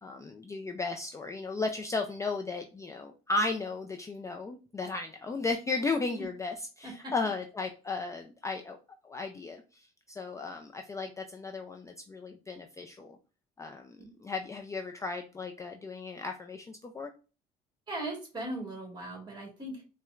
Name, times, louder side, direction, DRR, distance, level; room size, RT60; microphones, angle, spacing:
voice 1, 0.0-8.8 9.0-13.2 13.6-17.1, left 3 dB, 20° left, 3 dB, 0.3 m, -35 dB
voice 2, 17.9-19.8, right 1 dB, 25° right, 1 dB, 1.5 m, -38 dB
4.3 x 2.1 x 2.3 m, 0.33 s
cardioid pair, 110°, 17 cm